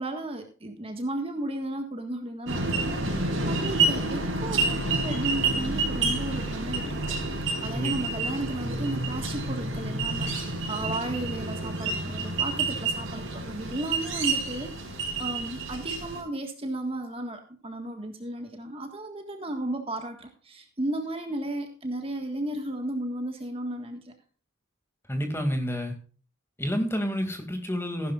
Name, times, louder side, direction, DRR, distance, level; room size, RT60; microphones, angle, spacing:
voice 1, 0.0-7.0 7.3-24.1, right 1 dB, 30° right, 5 dB, 1.6 m, -34 dB
sound 1, 2.5-16.2, right 3 dB, 70° right, 5.4 m, -29 dB
voice 2, 25.1-25.9 26.6-28.1, equal, 10° left, 5 dB, 2.3 m, -29 dB
15.5 x 11.5 x 2.4 m, 0.38 s
head